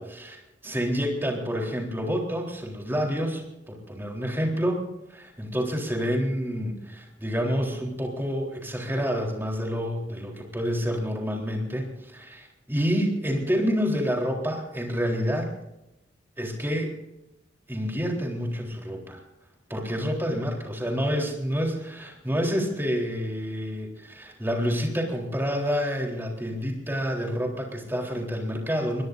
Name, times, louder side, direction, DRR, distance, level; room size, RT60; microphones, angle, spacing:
voice 1, 0.0-4.8 5.1-15.5 16.4-16.9 17.7-19.2 19.7-29.0, equal, 10° right, 0 dB, 3.8 m, -28 dB
23.5 x 21.5 x 2.7 m, 0.92 s
head